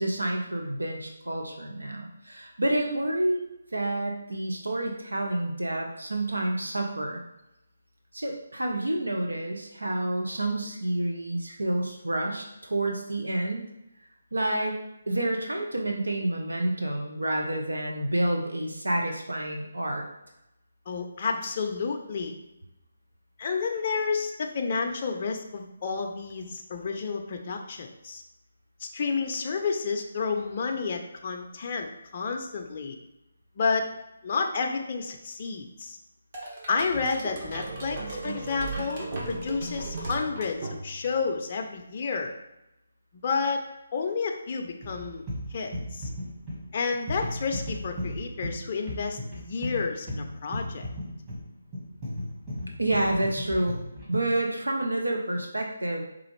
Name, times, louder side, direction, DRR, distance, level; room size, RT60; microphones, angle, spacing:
voice 1, 0.0-7.2 8.1-13.7 14.3-14.8 15.1-20.0 52.8-53.8 54.1-56.1, right 1 dB, 90° right, 1 dB, 0.6 m, -29 dB
voice 2, 20.9-22.3 23.4-28.2 28.8-33.0 33.6-33.9 34.2-36.0 36.7-42.3 43.2-43.7 43.9-45.2 45.5-46.1 46.7-50.9, left 4 dB, 40° left, 3 dB, 0.4 m, -30 dB
sound 1, 36.3-41.2, right 2 dB, 40° right, 1.0 m, -36 dB
sound 2, 44.8-54.4, equal, 20° right, 1.2 m, -36 dB
4.8 x 2.4 x 3.1 m, 0.88 s
figure-of-eight pair, 150°, 0 cm